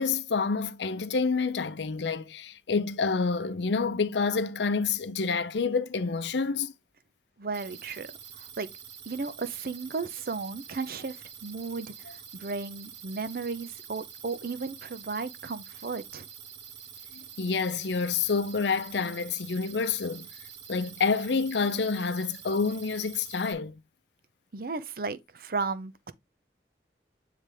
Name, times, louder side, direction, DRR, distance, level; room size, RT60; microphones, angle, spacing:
voice 1, 0.0-6.7 17.1-20.3 20.7-23.8, left 4 dB, 80° left, 0.6 m, -28 dB
voice 2, 7.4-8.1 8.4-8.7 9.1-16.3 24.5-26.1, right 4 dB, 55° right, 0.6 m, -35 dB
sound 1, 7.5-23.5, right 8 dB, 80° right, 1.7 m, -46 dB
9.1 x 3.3 x 3.4 m
head